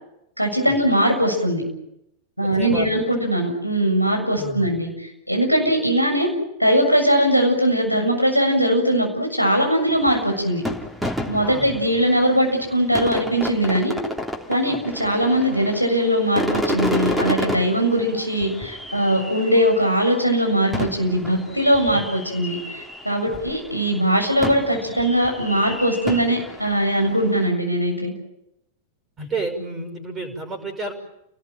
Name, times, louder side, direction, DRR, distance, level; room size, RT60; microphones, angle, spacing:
voice 1, 0.4-1.6 2.4-4.9 5.3-6.3 6.6-10.6 11.3-13.9 14.5-28.1, equal, 90° right, 1 dB, 7.3 m, -20 dB
voice 2, 2.5-2.9 4.3-4.7 11.4-11.7 14.6-14.8 21.9-22.0 23.3-23.4 29.2-30.9, right 2 dB, 25° right, 5 dB, 6.3 m, -31 dB
sound 1, 9.9-23.6 24.4-27.5, equal, 5° right, 3.3 m, -30 dB
30.0 x 20.0 x 9.2 m, 0.84 s
figure-of-eight pair, 90°, 0 cm